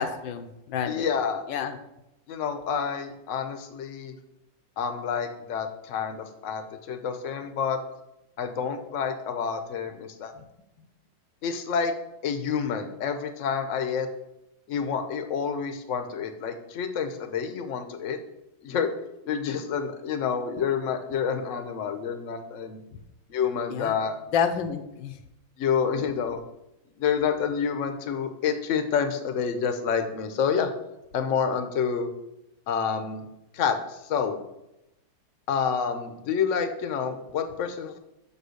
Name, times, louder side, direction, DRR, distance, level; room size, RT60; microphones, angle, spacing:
voice 1, 0.0-1.1 1.5-1.8 23.7-24.0 24.3-25.1, left 7 dB, 85° left, 9 dB, 1.5 m, -29 dB
voice 2, 0.9-1.4 2.3-4.1 4.8-7.8 8.4-10.3 11.4-11.9 12.2-14.1 14.7-18.2 18.6-18.9 19.2-22.8 23.3-24.2 25.6-26.4 27.0-30.7 31.1-32.1 32.7-33.2 33.5-34.4 35.5-38.0, left 6 dB, 55° left, 8 dB, 0.9 m, -28 dB
6.2 x 5.4 x 6.4 m, 0.89 s
omnidirectional pair, 2.0 m